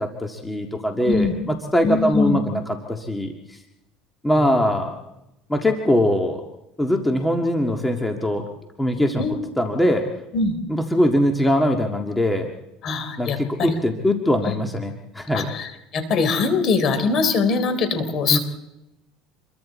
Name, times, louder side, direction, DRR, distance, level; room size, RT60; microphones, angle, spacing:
voice 1, 0.0-3.6 4.2-5.0 5.5-6.4 6.8-8.5 8.8-9.2 9.6-10.1 10.7-12.5 13.2-15.5 18.3-18.4, equal, 5° left, 2 dB, 1.8 m, -22 dB
voice 2, 1.0-1.4 1.8-2.4 4.4-4.7 9.2-9.4 10.3-10.5 12.8-13.8 14.4-14.5 15.3-18.4, left 4 dB, 45° left, 9 dB, 3.8 m, -22 dB
27.5 x 23.0 x 4.2 m, 0.89 s
supercardioid pair, 125°, 0 cm